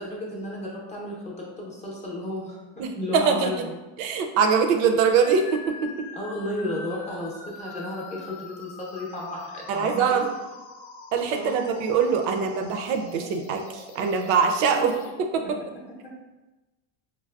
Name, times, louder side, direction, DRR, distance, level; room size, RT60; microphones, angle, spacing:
voice 1, 0.0-3.7 6.1-10.2 11.2-11.6 14.7-14.8 16.0-16.1, left 1 dB, 15° left, -4 dB, 0.6 m, -33 dB
voice 2, 2.8-3.5 4.0-6.1 9.7-10.2 11.1-14.9 15.2-15.6, right 6 dB, 75° right, 5 dB, 0.6 m, -23 dB
sound 1, 5.1-15.1, left 4 dB, 80° left, 0.6 m, -43 dB
4.6 x 2.0 x 2.3 m, 1.1 s
cardioid pair, 135°, 41 cm